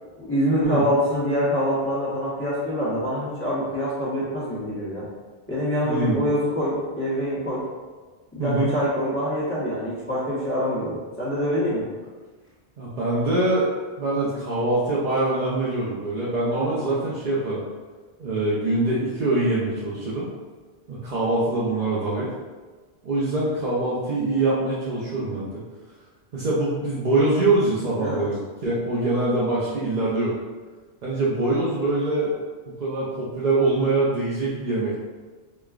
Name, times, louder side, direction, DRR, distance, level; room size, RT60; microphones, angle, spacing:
voice 1, 0.2-5.0 5.5-7.6 8.3-11.9 28.0-28.3, equal, 15° left, -10 dB, 1.0 m, -25 dB
voice 2, 5.8-6.2 8.4-8.7 12.8-13.7 14.0-17.6 18.2-20.3 20.9-22.3 23.0-25.6 26.3-30.4 31.0-32.3 32.8-35.0, right 2 dB, 50° right, -8 dB, 0.7 m, -24 dB
5.0 x 2.3 x 2.4 m, 1.4 s
omnidirectional pair, 1.1 m